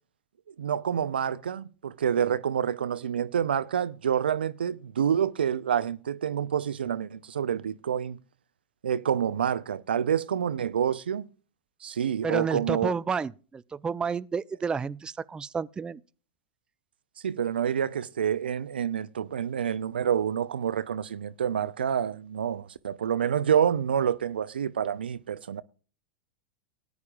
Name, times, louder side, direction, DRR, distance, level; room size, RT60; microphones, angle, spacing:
voice 1, 0.5-8.2 8.8-11.3 11.8-12.9 17.2-25.6, right 8 dB, 80° right, 0.6 m, -28 dB
voice 2, 12.2-16.0, right 5 dB, 15° right, 0.5 m, -30 dB
18.0 x 9.7 x 2.4 m
hypercardioid pair, 100°, 5 cm